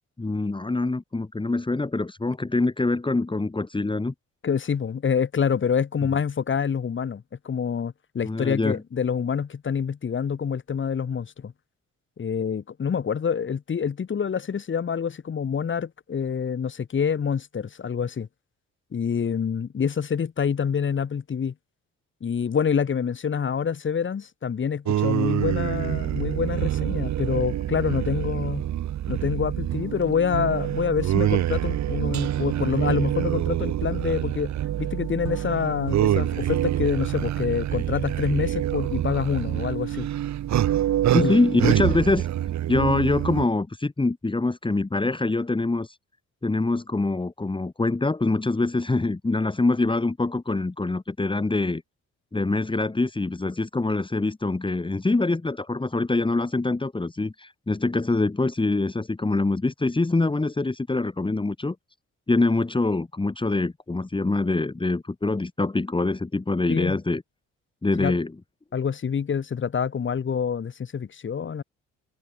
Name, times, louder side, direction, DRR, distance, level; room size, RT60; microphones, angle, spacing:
voice 1, 0.2-4.1 8.2-8.8 41.1-42.3 42.7-46.0 46.4-51.8 52.3-61.8 62.3-67.2 67.8-68.3, left 2 dB, 15° left, 2.5 m, -24 dB
voice 2, 4.4-11.5 12.2-18.3 18.9-21.5 22.2-28.7 29.1-34.5 34.8-40.1 41.2-41.3 66.7-67.0 68.0-68.1 68.7-71.6, left 7 dB, 40° left, 2.0 m, -26 dB
sound 1, 24.9-43.4, right 12 dB, 65° right, 1.4 m, -26 dB
cardioid pair, 90°, 30 cm